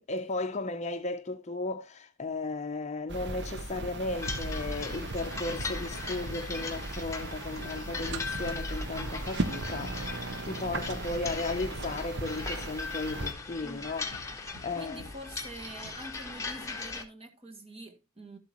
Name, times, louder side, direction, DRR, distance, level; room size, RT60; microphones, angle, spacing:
voice 1, 0.0-15.1, left 3 dB, 30° left, 0.6 m, -35 dB
sound 1, 3.1-13.3, right 2 dB, 55° right, 0.8 m, -37 dB
sound 2, 4.1-17.0, left 4 dB, 15° left, 1.4 m, -39 dB
sound 3, 5.5-5.6 6.3-6.5 7.2-7.3 7.6-8.2 8.9-9.1 9.8-9.9 10.7-10.8 11.1-11.2 11.5-11.7 12.4-12.5 13.2-13.4 14.1-14.3 14.5-14.7 15.0-15.1 15.8-15.9, equal, 80° right, 5.4 m, -49 dB
voice 2, 13.6-13.9 14.7-18.4, right 1 dB, 25° right, 1.8 m, -45 dB
12.5 x 7.8 x 3.0 m
head